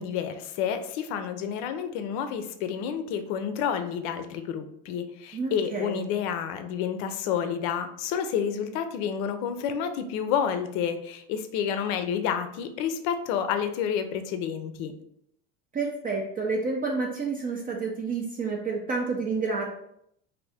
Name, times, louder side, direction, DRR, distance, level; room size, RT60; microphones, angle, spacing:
voice 1, 0.0-14.9, left 8 dB, 60° left, 8 dB, 0.5 m, -29 dB
voice 2, 5.3-6.0 15.7-19.7, right 4 dB, 25° right, 0 dB, 0.4 m, -29 dB
2.7 x 2.6 x 3.3 m, 0.73 s
supercardioid pair, 100°, 38 cm